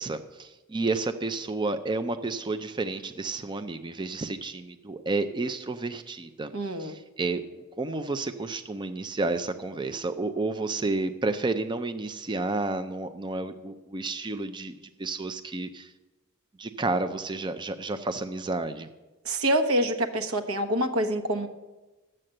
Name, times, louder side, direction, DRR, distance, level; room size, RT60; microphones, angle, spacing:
voice 1, 0.0-6.5 6.8-14.7 15.0-15.9 16.6-18.9, right 3 dB, 20° right, 9 dB, 0.5 m, -31 dB
voice 2, 6.5-6.9 19.2-21.5, right 1 dB, 80° right, 5 dB, 1.2 m, -26 dB
12.0 x 7.6 x 7.7 m, 1.1 s
head